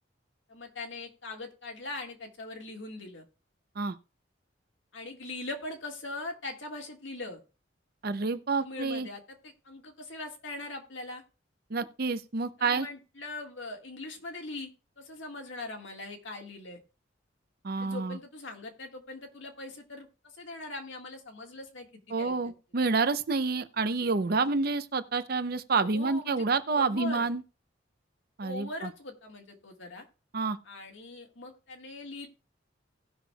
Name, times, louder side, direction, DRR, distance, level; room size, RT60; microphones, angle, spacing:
voice 1, 0.5-3.3 4.9-7.4 8.6-11.2 12.6-14.7 15.0-16.8 17.8-22.3 25.8-27.3 28.4-30.1 30.6-32.3, left 2 dB, 80° left, 1.7 m, -41 dB
voice 2, 8.0-9.1 11.7-12.9 17.6-18.2 22.1-27.4 28.4-28.9 30.3-30.6, right 4 dB, 55° right, 0.6 m, -28 dB
18.0 x 6.1 x 2.3 m
head